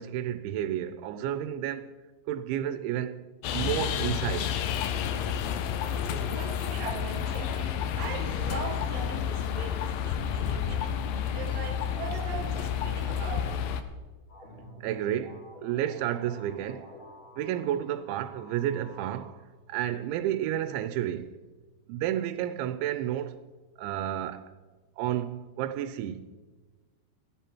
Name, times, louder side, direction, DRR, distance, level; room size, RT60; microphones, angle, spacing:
voice 1, 0.0-1.9 2.3-3.3 3.5-4.7 14.8-16.9 17.4-19.4 19.7-21.4 21.9-23.4 23.8-24.5 25.0-26.3, right 11 dB, 90° right, 3.1 m, -31 dB
sound 1, 3.4-13.8, left 9 dB, 85° left, 2.0 m, -30 dB
voice 2, 5.9-13.7, right 5 dB, 65° right, 2.4 m, -40 dB
sound 2, 14.3-19.3, equal, 30° left, 5.0 m, -50 dB
16.0 x 14.5 x 4.6 m
omnidirectional pair, 5.2 m